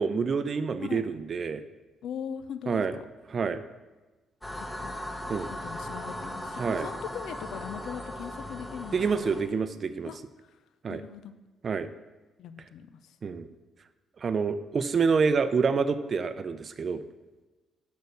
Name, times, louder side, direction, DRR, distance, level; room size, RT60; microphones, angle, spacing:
voice 1, 0.0-1.6 2.7-3.0 3.3-3.6 5.3-5.5 6.6-6.9 8.9-10.1 10.8-11.0 11.6-11.9 13.2-13.5 14.2-17.0, right 5 dB, 45° right, 12 dB, 0.5 m, -27 dB
voice 2, 2.0-2.8 4.6-4.9 5.6-9.0 10.1-10.2 10.9-11.3 12.4-12.9, left 8 dB, 75° left, 11 dB, 0.5 m, -39 dB
sound 1, 4.4-9.4, left 1 dB, 10° left, 1.1 m, -38 dB
6.3 x 5.3 x 6.7 m, 1.2 s
cardioid pair, 90°, 0 cm